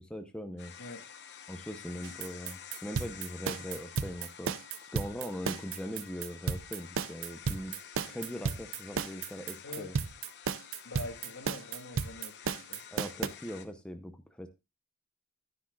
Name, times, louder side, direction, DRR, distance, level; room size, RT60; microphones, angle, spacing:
voice 1, 0.1-0.7 1.5-4.5 4.9-7.7 8.1-9.9 12.9-14.5, equal, 5° left, 0.8 m, -41 dB
sound 1, 0.6-13.6, left 8 dB, 55° left, 1.0 m, -50 dB
voice 2, 0.8-1.1 9.6-10.0 10.8-12.8, left 2 dB, 85° left, 1.7 m, -44 dB
sound 2, 2.0-13.3, right 6 dB, 65° right, 0.5 m, -34 dB
10.0 x 9.9 x 2.4 m
head